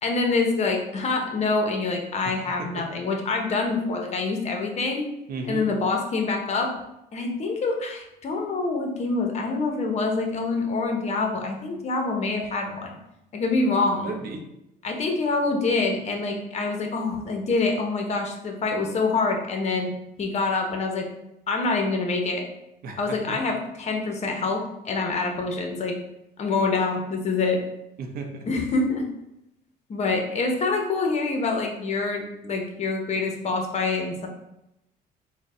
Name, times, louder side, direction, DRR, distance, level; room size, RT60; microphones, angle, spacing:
voice 1, 0.0-5.0 5.5-6.7 7.1-13.0 13.3-14.1 14.8-19.9 20.2-21.1 21.5-22.4 23.0-25.9 26.4-27.6 28.5-29.1 29.9-34.3, left 3 dB, 40° left, 2 dB, 0.7 m, -26 dB
voice 2, 2.2-2.9 5.3-5.7 14.0-14.5 22.8-23.4 28.0-28.5, right 3 dB, 60° right, 3 dB, 0.7 m, -35 dB
4.2 x 2.1 x 3.7 m, 0.87 s
cardioid pair, 110°, 17 cm